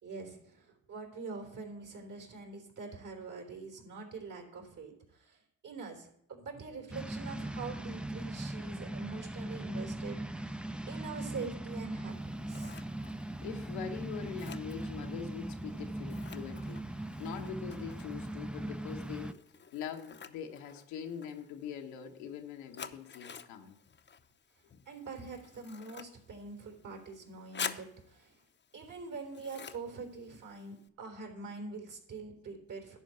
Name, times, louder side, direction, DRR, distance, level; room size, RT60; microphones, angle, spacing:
voice 1, 0.0-12.9 24.9-28.4 28.7-33.0, right 4 dB, 60° right, 2 dB, 3.4 m, -44 dB
sound 1, 6.9-19.3, right 1 dB, 5° right, 0.5 m, -40 dB
Scissors, 12.1-30.9, left 6 dB, 30° left, 0.8 m, -49 dB
voice 2, 13.2-19.4 19.7-23.7, left 7 dB, 85° left, 3 dB, 1.2 m, -43 dB
11.0 x 4.6 x 7.8 m, 0.70 s
hypercardioid pair, 60°, 35 cm